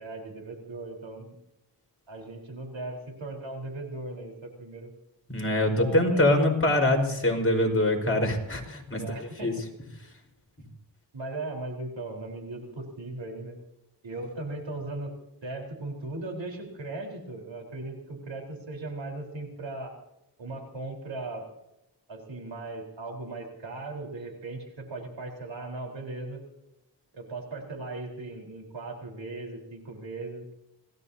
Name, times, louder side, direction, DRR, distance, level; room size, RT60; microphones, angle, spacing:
voice 1, 0.0-1.4 2.1-4.9 5.8-6.3 7.4-7.8 8.9-9.5 11.1-13.6 14.0-15.1 15.4-20.0 20.4-21.5 22.1-26.4 27.1-30.5, right 2 dB, 80° right, 2 dB, 4.4 m, -38 dB
voice 2, 5.3-9.0 9.4-9.5, left 1 dB, 30° left, 1 dB, 4.9 m, -24 dB
26.5 x 17.5 x 2.8 m, 0.86 s
wide cardioid pair, 70°, 44 cm